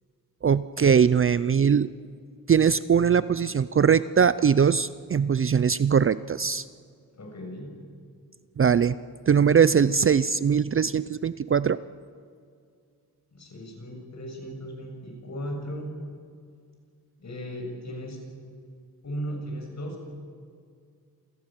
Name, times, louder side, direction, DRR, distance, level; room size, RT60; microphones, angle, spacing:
voice 1, 0.4-1.9 2.5-6.6 8.6-9.0 9.3-11.8, right 7 dB, 35° right, 16 dB, 0.5 m, -21 dB
voice 2, 7.1-7.7 13.3-15.9 17.2-18.2 19.0-20.0, equal, 45° left, 2 dB, 7.1 m, -36 dB
27.5 x 16.0 x 9.0 m, 2.2 s
cardioid pair, 105°, 37 cm